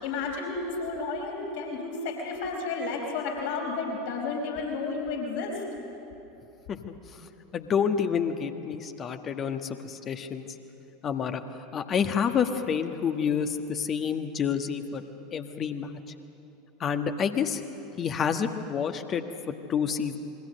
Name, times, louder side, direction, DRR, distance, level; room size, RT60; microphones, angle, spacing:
voice 1, 0.0-5.6, left 4 dB, 55° left, 0 dB, 4.8 m, -32 dB
voice 2, 7.5-10.4 11.0-11.4 11.7-15.0 15.3-15.9 16.8-17.6 18.0-20.2, left 7 dB, 30° left, 7 dB, 1.5 m, -28 dB
27.5 x 22.5 x 6.6 m, 3.0 s
figure-of-eight pair, 80°, 0 cm